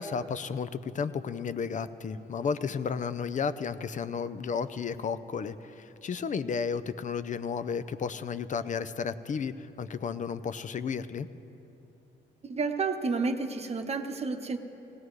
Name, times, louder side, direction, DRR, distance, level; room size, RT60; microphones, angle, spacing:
voice 1, 0.0-11.3, left 6 dB, 40° left, 13 dB, 0.5 m, -33 dB
voice 2, 12.4-14.6, right 4 dB, 30° right, 6 dB, 1.0 m, -30 dB
18.0 x 17.0 x 3.2 m, 2.9 s
cardioid pair, 90°, 20 cm